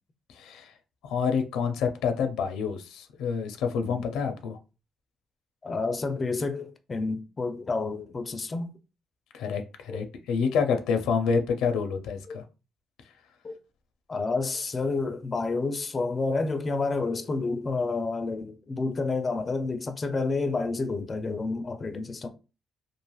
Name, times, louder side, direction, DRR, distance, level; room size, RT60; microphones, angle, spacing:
voice 1, 0.3-0.7 1.0-4.6 9.3-12.4, left 6 dB, 90° left, 0.5 m, -28 dB
voice 2, 5.6-8.7 9.9-10.0 12.3-12.4 13.4-13.6 14.1-22.3, left 3 dB, 35° left, 0.4 m, -29 dB
3.2 x 2.5 x 2.3 m
cardioid pair, 90°, 0 cm